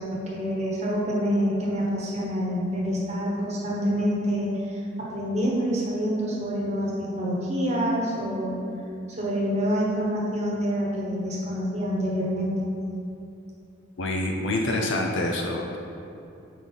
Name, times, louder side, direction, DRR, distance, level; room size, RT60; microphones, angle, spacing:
voice 1, 0.0-8.6 9.1-12.6, equal, 30° right, -4 dB, 1.1 m, -27 dB
voice 2, 14.0-15.8, left 1 dB, 65° left, 1 dB, 0.5 m, -26 dB
4.7 x 4.0 x 5.4 m, 2.8 s
head